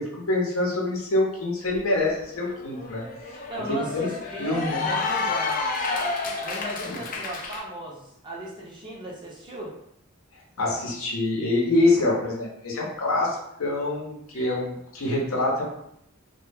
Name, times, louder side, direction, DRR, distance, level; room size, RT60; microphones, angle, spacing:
voice 1, 0.0-3.4 3.7-4.1 4.4-4.9 6.9-7.0 10.6-15.6, left 2 dB, 70° left, -2 dB, 0.7 m, -25 dB
Cheering / Applause, 1.8-1.9 2.2-7.6, left 3 dB, 40° left, 0.3 m, -30 dB
voice 2, 3.5-5.6 6.4-9.7 14.3-14.6, right 1 dB, 20° right, -5 dB, 0.6 m, -36 dB
2.1 x 2.0 x 3.3 m, 0.76 s
head